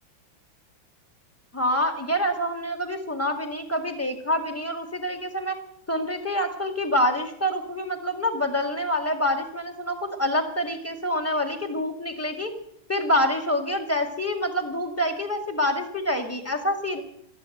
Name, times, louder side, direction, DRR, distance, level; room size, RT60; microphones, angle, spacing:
voice 1, 1.5-5.6 5.9-12.5 12.9-17.0, left 1 dB, 5° left, 3 dB, 1.8 m, -26 dB
13.5 x 12.0 x 7.8 m, 0.72 s
omnidirectional pair, 2.2 m